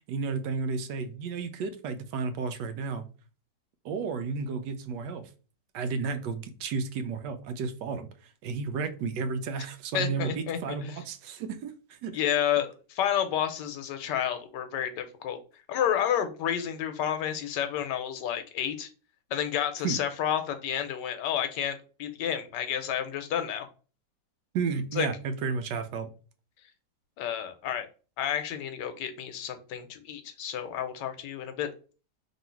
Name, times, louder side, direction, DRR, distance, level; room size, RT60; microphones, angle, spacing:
voice 1, 0.1-3.1 3.8-5.3 5.7-8.1 8.4-12.2 19.8-20.0 24.5-26.1, right 5 dB, 80° right, 9 dB, 1.2 m, -32 dB
voice 2, 9.9-11.0 12.1-15.4 15.7-18.9 19.3-23.7 25.0-25.1 27.2-27.9 28.2-31.7, left 9 dB, 80° left, 8 dB, 1.3 m, -30 dB
3.1 x 2.7 x 4.3 m, 0.37 s
omnidirectional pair, 1.9 m